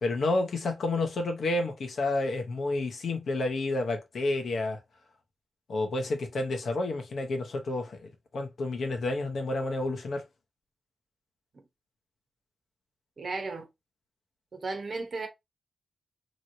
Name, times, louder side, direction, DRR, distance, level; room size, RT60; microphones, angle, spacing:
voice 1, 0.0-4.8 5.7-10.2, left 2 dB, 70° left, 0.9 m, -30 dB
voice 2, 13.2-13.7 14.5-15.3, right 3 dB, 60° right, 0.9 m, -34 dB
3.1 x 3.0 x 2.7 m
supercardioid pair, 45°, 0 cm